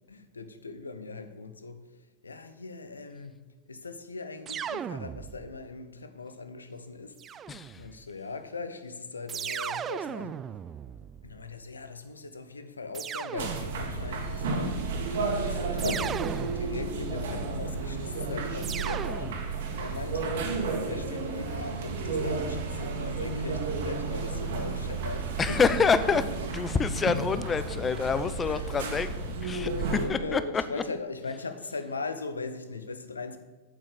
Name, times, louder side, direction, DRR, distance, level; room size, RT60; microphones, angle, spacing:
voice 1, 0.1-3.4 3.7-10.4 11.2-25.6 26.1-26.2 28.5-29.0 29.8-33.4, left 3 dB, 75° left, 1.1 m, -39 dB
sound 1, 4.5-5.7 7.2-8.0 9.3-11.6 12.9-14.1 15.8-17.1 18.6-19.8, right 8 dB, 25° right, 0.4 m, -37 dB
voice 2, 7.5-7.8 25.4-26.2 26.5-29.1 29.4-30.8, left 5 dB, 20° left, 0.6 m, -27 dB
sound 2, 13.4-30.1, right 3 dB, 55° right, 2.2 m, -32 dB
8.6 x 8.4 x 8.4 m
figure-of-eight pair, 90°, 0 cm